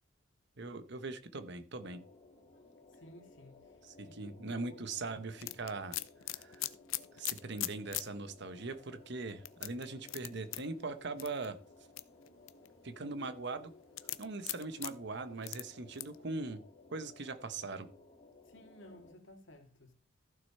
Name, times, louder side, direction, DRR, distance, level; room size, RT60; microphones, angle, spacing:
voice 1, 0.6-2.0 3.8-6.0 6.3-6.7 7.1-11.6 12.8-13.7 14.2-16.6 16.9-17.9, right 3 dB, 55° right, 1.0 m, -41 dB
sound 1, 1.8-19.1, left 3 dB, 35° left, 2.5 m, -59 dB
voice 2, 2.9-4.8 18.4-19.9, left 1 dB, 65° left, 2.3 m, -57 dB
sound 2, 5.4-8.1 8.5-8.6 9.5-10.6 11.2-11.5 12.0-12.7 14.0-14.9 15.4-15.6 16.0-16.2, left 16 dB, 85° left, 0.7 m, -38 dB
14.5 x 6.5 x 4.3 m
head